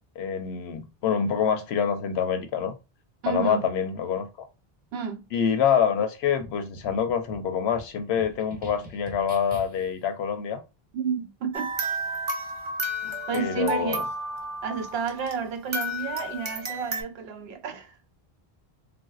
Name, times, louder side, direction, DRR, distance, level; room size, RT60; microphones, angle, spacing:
voice 1, 0.2-2.7 3.3-4.5 5.3-10.6 13.0-14.0, left 7 dB, 85° left, 0.9 m, -26 dB
voice 2, 3.2-3.6 4.9-5.3 10.9-11.8 13.3-14.1 14.6-18.0, right 6 dB, 80° right, 0.8 m, -31 dB
sound 1, 6.4-10.0, right 2 dB, 10° right, 0.9 m, -45 dB
sound 2, 11.5-15.4 15.7-17.0, right 1 dB, 35° right, 0.5 m, -32 dB
3.4 x 2.6 x 2.3 m
omnidirectional pair, 1.0 m